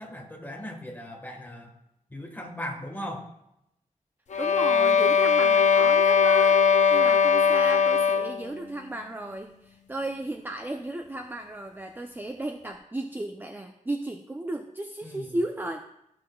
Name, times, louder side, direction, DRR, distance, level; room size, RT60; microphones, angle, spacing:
voice 1, 0.0-1.7 2.1-3.3 15.0-15.4, left 1 dB, 15° left, 2 dB, 1.4 m, -38 dB
sound 1, 4.3-8.5, left 6 dB, 60° left, 0.6 m, -20 dB
voice 2, 4.4-15.8, right 1 dB, 15° right, 4 dB, 0.4 m, -35 dB
14.0 x 6.1 x 2.3 m, 0.82 s
wide cardioid pair, 125°, 13 cm